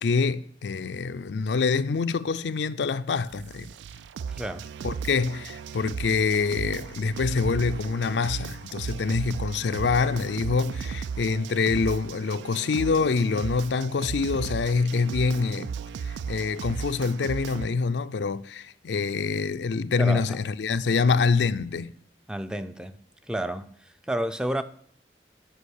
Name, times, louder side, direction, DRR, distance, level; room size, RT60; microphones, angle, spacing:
voice 1, 0.0-3.7 4.8-15.7 16.3-21.9, left 4 dB, 80° left, 0.4 m, -26 dB
sound 1, 3.3-17.7, right 6 dB, 90° right, 0.3 m, -36 dB
voice 2, 4.3-4.6 20.0-20.4 22.3-23.0 23.3-24.6, right 1 dB, 5° right, 0.3 m, -30 dB
7.9 x 5.3 x 6.5 m
head